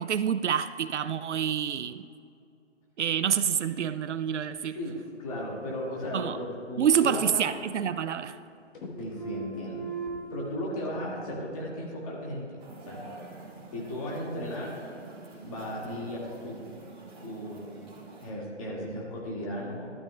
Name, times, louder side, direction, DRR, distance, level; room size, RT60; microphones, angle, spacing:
voice 1, 0.0-2.0 3.0-4.8 6.1-6.4 6.8-8.4, right 8 dB, 70° right, 0.5 m, -27 dB
voice 2, 4.6-7.5 9.0-9.8 10.3-13.0 13.7-14.8 15.4-16.6 17.2-17.8 18.2-19.9, left 1 dB, 30° left, 1.9 m, -36 dB
sound 1, 6.3-7.3 7.6-8.5 8.7-10.4, right 4 dB, 45° left, 1.2 m, -40 dB
sound 2, 12.6-18.3, right 2 dB, 20° right, 1.8 m, -47 dB
12.5 x 12.0 x 2.2 m
hypercardioid pair, 155°, 36 cm